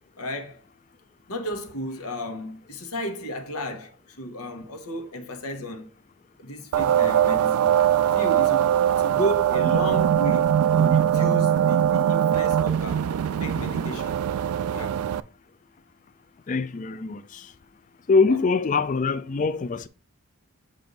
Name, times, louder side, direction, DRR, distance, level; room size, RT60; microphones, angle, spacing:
voice 1, 0.2-0.6 1.3-5.9 6.4-13.2 13.4-14.2 14.7-15.0 18.2-18.4, equal, 85° left, 1.1 m, -33 dB
sound 1, 6.7-15.2, right 10 dB, 75° right, 0.3 m, -21 dB
voice 2, 16.5-17.5 18.1-19.9, left 4 dB, 35° left, 0.3 m, -23 dB
7.4 x 2.6 x 5.2 m
head